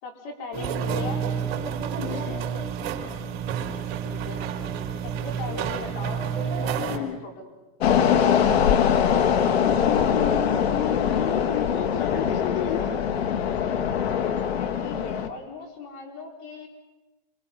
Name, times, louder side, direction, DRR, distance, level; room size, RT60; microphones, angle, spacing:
voice 1, 0.0-1.3 4.1-4.4 5.0-7.5 14.5-16.7, left 3 dB, 50° left, 3 dB, 5.1 m, -38 dB
sound 1, 0.5-7.0, right 7 dB, 45° right, 3.9 m, -29 dB
voice 2, 1.9-2.5 6.9-7.2 9.6-13.0, left 8 dB, 70° left, 3 dB, 3.0 m, -31 dB
sound 2, 7.8-15.3, left 8 dB, 85° left, 1.9 m, -22 dB
27.5 x 25.5 x 5.6 m, 1.1 s
supercardioid pair, 140°, 30 cm